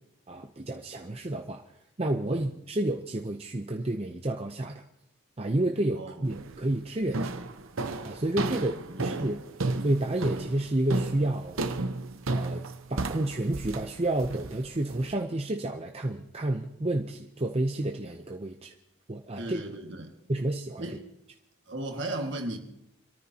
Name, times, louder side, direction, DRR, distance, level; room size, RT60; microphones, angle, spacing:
voice 1, 0.3-1.6 2.0-4.8 5.4-7.3 8.0-8.7 9.0-9.4 9.8-11.6 12.3-12.6 12.9-18.7 19.1-19.6 19.9-20.0 20.3-20.9, right 1 dB, 25° right, 0.6 m, -30 dB
voice 2, 5.9-6.3 8.6-9.3 19.4-20.1 20.8-21.0 21.7-22.6, right 1 dB, 55° right, 1.9 m, -36 dB
sound 1, 6.3-6.6 7.1-15.1, right 2 dB, 70° right, 0.8 m, -33 dB
27.0 x 13.5 x 2.9 m
head